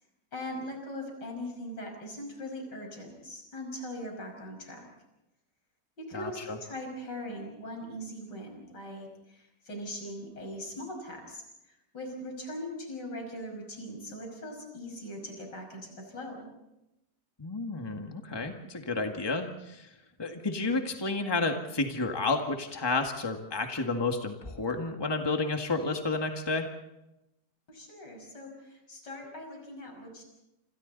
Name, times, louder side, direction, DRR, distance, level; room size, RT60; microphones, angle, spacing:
voice 1, 0.3-4.9 6.0-16.5 27.7-30.2, left 1 dB, 80° left, 2 dB, 6.4 m, -40 dB
voice 2, 6.1-6.6 17.4-19.9 20.2-26.7, left 3 dB, 15° left, 4 dB, 1.9 m, -31 dB
27.5 x 27.0 x 4.1 m, 0.89 s
omnidirectional pair, 1.8 m